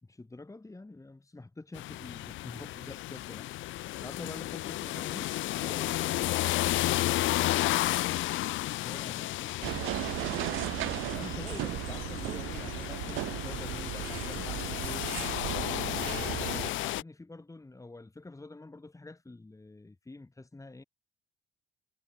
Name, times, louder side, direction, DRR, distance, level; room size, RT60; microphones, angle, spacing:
voice 1, 0.0-3.5 4.0-6.1 8.8-9.5 11.1-15.1 15.8-20.8, left 2 dB, 15° left, 2.6 m, -47 dB
sound 1, 1.7-17.0, left 16 dB, 75° left, 0.4 m, -33 dB
voice 2, 8.9-10.4, left 8 dB, 55° left, 4.0 m, -54 dB
sound 2, 9.6-16.7, right 18 dB, 90° right, 0.7 m, -36 dB
cardioid pair, 90°, 20 cm